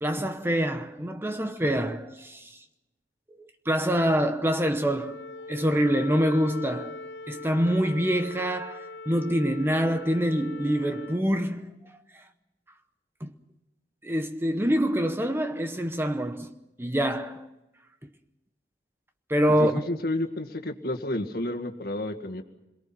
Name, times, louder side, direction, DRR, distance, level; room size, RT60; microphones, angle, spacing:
voice 1, 0.0-2.6 3.4-5.2 5.5-7.0 7.3-12.2 13.2-13.3 14.0-16.5 16.8-17.4 19.3-19.8, equal, 15° right, 0.9 m, -26 dB
Wind instrument woodwind instrument, 4.9-11.2, left 3 dB, 80° left, 0.9 m, -41 dB
voice 2, 19.6-22.4, left 1 dB, 55° left, 1.9 m, -31 dB
27.5 x 22.5 x 6.0 m
head